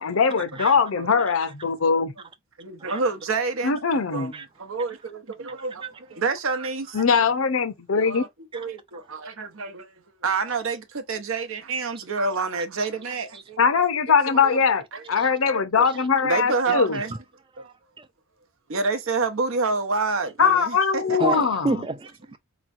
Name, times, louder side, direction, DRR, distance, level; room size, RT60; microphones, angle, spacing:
voice 1, 0.0-2.1 3.6-4.3 6.9-8.2 13.6-14.8 15.1-17.0 20.4-21.8, left 5 dB, 70° left, 0.7 m, -21 dB
voice 2, 2.6-7.3 8.0-8.3 8.5-13.8 14.3-15.1 15.4-17.2 17.6-17.7 18.7-21.3, right 4 dB, 65° right, 0.8 m, -29 dB
voice 3, 17.6-18.1 21.2-22.4, right 2 dB, 20° right, 0.4 m, -29 dB
4.3 x 3.0 x 2.5 m
head